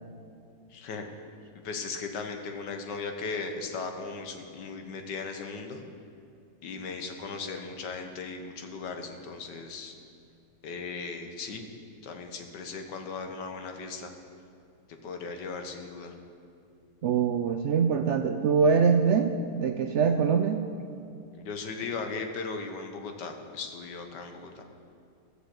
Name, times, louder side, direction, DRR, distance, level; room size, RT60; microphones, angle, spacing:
voice 1, 0.7-1.1 1.6-5.8 6.6-10.0 10.6-11.7 12.0-14.1 15.0-16.2 21.4-24.6, left 4 dB, 85° left, 5 dB, 1.7 m, -37 dB
voice 2, 17.0-20.7, right 6 dB, 75° right, 6 dB, 0.6 m, -24 dB
13.0 x 6.9 x 7.6 m, 2.5 s
omnidirectional pair, 1.8 m